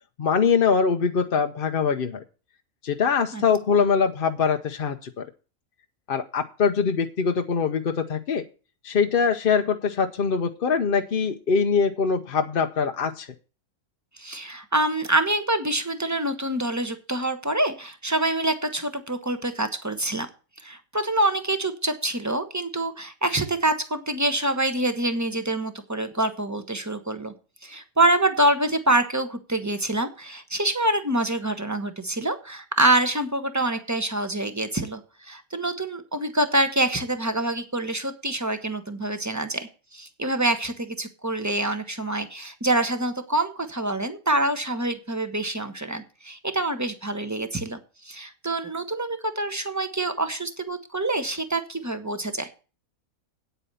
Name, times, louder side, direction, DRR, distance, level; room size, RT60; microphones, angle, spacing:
voice 1, 0.2-2.2 2.8-5.3 6.1-8.4 8.8-13.3, left 6 dB, 50° left, 5 dB, 0.8 m, -23 dB
voice 2, 14.2-20.3 20.6-27.3 27.6-52.5, right 1 dB, 15° right, 8 dB, 1.2 m, -26 dB
9.3 x 8.3 x 5.5 m, 0.34 s
omnidirectional pair, 1.5 m